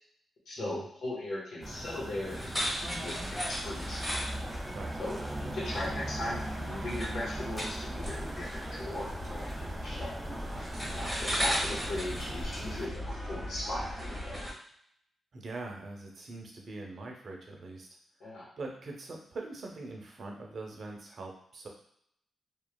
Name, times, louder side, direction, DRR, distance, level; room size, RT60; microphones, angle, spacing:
voice 1, 0.5-4.0 5.0-9.5 9.8-10.1 10.9-14.4 18.2-18.5, left 1 dB, 80° left, -5 dB, 1.1 m, -38 dB
sound 1, 1.6-12.9, right 1 dB, 15° right, 0.3 m, -40 dB
sound 2, 2.2-14.5, equal, 15° left, 1.5 m, -37 dB
voice 2, 15.3-17.9 18.6-21.7, right 2 dB, 60° right, 1 dB, 0.6 m, -42 dB
3.0 x 2.3 x 2.2 m, 0.68 s
cardioid pair, 70°, 0 cm